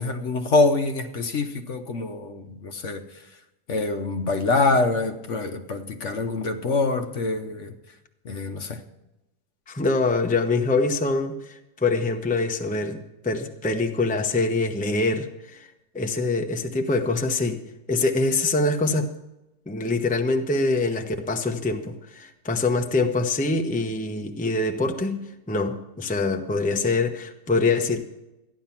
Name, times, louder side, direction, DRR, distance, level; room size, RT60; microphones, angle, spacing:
voice 1, 0.0-3.1 3.7-7.7 8.2-8.8, left 3 dB, 55° left, 1.2 m, -25 dB
voice 2, 9.7-15.7 15.9-17.6 17.9-19.1 19.7-28.0, left 3 dB, 5° left, 0.7 m, -24 dB
14.0 x 10.5 x 5.8 m
omnidirectional pair, 1.7 m